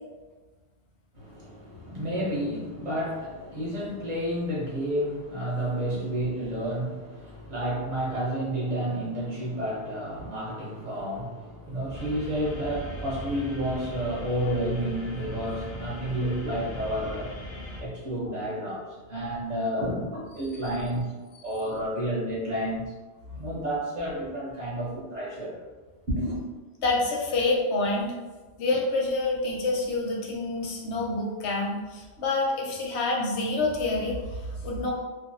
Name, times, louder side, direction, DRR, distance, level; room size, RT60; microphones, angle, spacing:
voice 1, 1.1-17.3 17.8-18.8 19.1-19.9 20.3-21.1 21.4-22.8 23.3-25.6 26.1-26.4, equal, 40° right, -7 dB, 0.9 m, -30 dB
sound 1, 11.9-17.8, right 1 dB, 60° left, 0.6 m, -39 dB
voice 2, 26.8-28.1 28.6-34.9, left 2 dB, 85° left, -2 dB, 0.9 m, -27 dB
2.5 x 2.0 x 2.6 m, 1.3 s
omnidirectional pair, 1.1 m